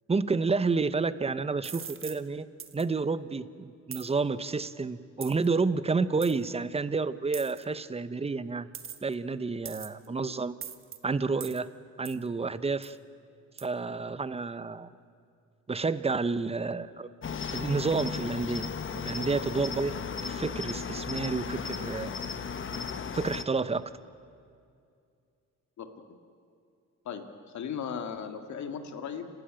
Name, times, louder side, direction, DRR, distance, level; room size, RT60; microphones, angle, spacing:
voice 1, 0.1-2.5 2.7-8.7 9.0-10.6 11.0-11.7 12.0-13.0 13.6-14.9 15.7-17.1 17.5-22.2 23.1-23.9, right 4 dB, 20° right, 15 dB, 0.8 m, -30 dB
sound 1, 1.6-2.2 2.6-2.8 3.9-4.1 5.2-5.5 6.2-6.3 7.3-7.6 8.7-9.1 9.7-10.1 10.6-11.0 11.4-11.6 12.1-12.2 12.8-13.0 13.6-13.7, right 7 dB, 45° right, 1.3 m, -41 dB
Cricket, 17.2-23.4, left 6 dB, 40° left, 1.2 m, -35 dB
voice 2, 27.5-29.3, left 7 dB, 70° left, 7 dB, 2.1 m, -37 dB
29.5 x 13.0 x 9.1 m, 2.4 s
cardioid pair, 90°, 30 cm